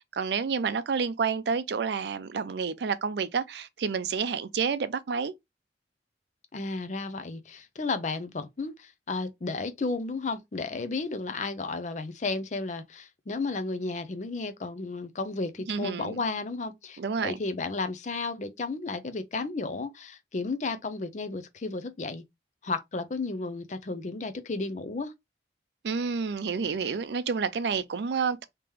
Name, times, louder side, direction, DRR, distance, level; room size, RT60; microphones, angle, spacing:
voice 1, 0.1-5.3 15.7-16.2 17.0-17.4 25.8-28.4, right 5 dB, 65° right, 0.4 m, -29 dB
voice 2, 6.5-22.2 22.6-25.1, left 3 dB, 40° left, 0.5 m, -33 dB
3.1 x 2.9 x 3.5 m
head